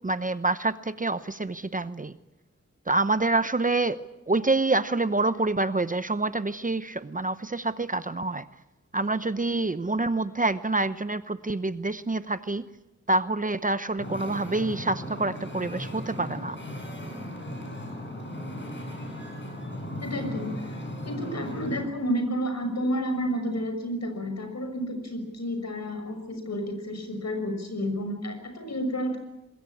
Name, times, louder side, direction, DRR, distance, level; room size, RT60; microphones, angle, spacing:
voice 1, 0.0-2.2 2.9-4.0 4.3-8.4 8.9-12.6 13.1-16.6, right 2 dB, 25° right, 12 dB, 0.8 m, -27 dB
Wind / Ocean, 14.0-21.9, left 1 dB, 40° left, 7.6 m, -37 dB
voice 2, 20.0-20.5 21.0-29.2, equal, 60° left, 6 dB, 6.4 m, -30 dB
24.5 x 21.0 x 8.6 m, 0.94 s
wide cardioid pair, 105°, 29 cm